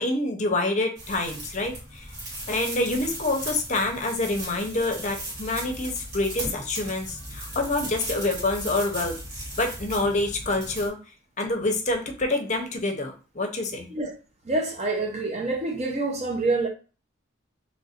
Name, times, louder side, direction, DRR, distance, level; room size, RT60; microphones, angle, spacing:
voice 1, 0.0-2.0 2.5-9.2 9.6-11.0 11.4-13.9, left 2 dB, 35° left, 0.7 m, -27 dB
sound 1, 1.0-10.9, right 1 dB, 55° right, 2.0 m, -37 dB
voice 2, 14.4-16.7, right 2 dB, 35° right, 0.8 m, -26 dB
3.2 x 2.5 x 4.2 m
head